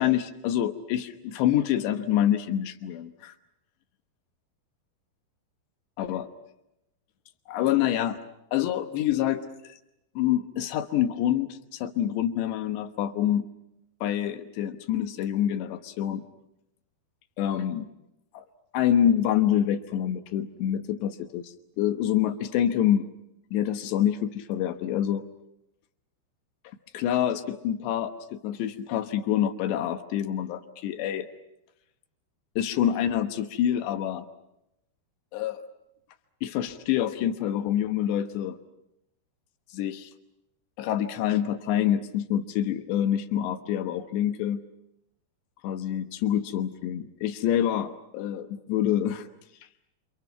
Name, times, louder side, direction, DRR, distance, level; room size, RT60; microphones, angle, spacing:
voice 1, 0.0-3.3 6.0-6.3 7.5-8.2 8.5-9.5 10.2-13.5 14.0-16.2 17.4-17.9 18.3-18.5 18.7-23.1 23.5-25.3 26.9-31.3 32.6-34.3 35.3-35.6 36.4-38.6 39.7-40.1 40.8-44.6 45.6-49.3, left 10 dB, 85° left, 7 dB, 3.4 m, -26 dB
29.0 x 28.5 x 6.0 m, 0.83 s
omnidirectional pair, 4.9 m